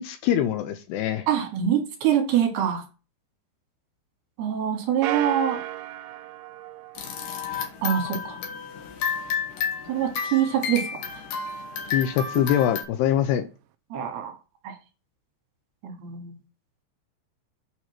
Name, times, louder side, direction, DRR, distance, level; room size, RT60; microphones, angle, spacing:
voice 1, 0.0-1.3 11.9-13.4, left 10 dB, 80° left, 9 dB, 2.5 m, -23 dB
voice 2, 1.3-2.8 4.4-5.6 7.8-8.4 9.9-10.8 13.9-14.3 14.6-14.7 15.8-16.3, right 9 dB, 65° right, 3 dB, 4.0 m, -24 dB
sound 1, 5.0-7.7, right 14 dB, 85° right, 3.0 m, -34 dB
sound 2, 6.9-12.8, left 7 dB, 60° left, 2.7 m, -31 dB
9.1 x 4.5 x 5.9 m, 0.32 s
omnidirectional pair, 5.2 m